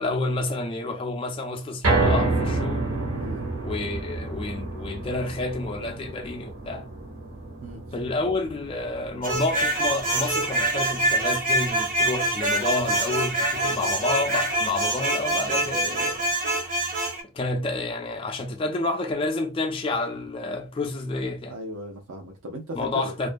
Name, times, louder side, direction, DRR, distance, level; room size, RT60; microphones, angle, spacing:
voice 1, 0.0-3.0 3.6-6.9 7.9-16.3 17.3-21.6 22.8-23.3, left 2 dB, 25° left, 0.3 m, -29 dB
sound 1, 1.8-14.1 14.5-14.6 15.0-15.1, right 3 dB, 65° right, 0.9 m, -30 dB
voice 2, 3.1-3.5 7.6-7.8 21.5-23.1, equal, 85° right, 0.6 m, -37 dB
sound 2, 9.2-17.2, right 2 dB, 40° right, 0.6 m, -25 dB
2.4 x 2.1 x 2.5 m
head